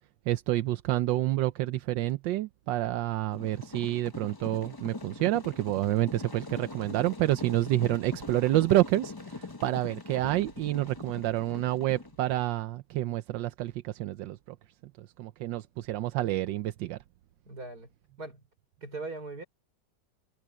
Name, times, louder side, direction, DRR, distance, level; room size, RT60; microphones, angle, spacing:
voice 1, 0.3-14.6 15.0-17.0, right 15 dB, 85° right, 1.4 m, -28 dB
sound 1, 3.3-12.4, left 3 dB, 20° left, 0.7 m, -42 dB
voice 2, 17.4-17.9 18.2-18.4 18.8-19.4, right 3 dB, 55° right, 6.1 m, -39 dB
omnidirectional pair, 1.9 m